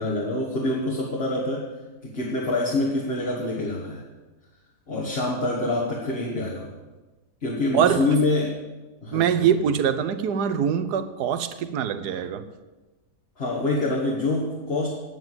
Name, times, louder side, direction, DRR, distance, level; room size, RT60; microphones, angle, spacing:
voice 1, 0.0-1.7 2.0-4.0 4.9-6.7 7.4-8.5 9.0-9.2 13.4-14.9, left 2 dB, 40° left, -3 dB, 1.9 m, -26 dB
voice 2, 7.7-8.1 9.1-12.4, right 8 dB, 80° right, 11 dB, 1.4 m, -23 dB
9.2 x 9.2 x 8.0 m, 1.2 s
omnidirectional pair, 1.7 m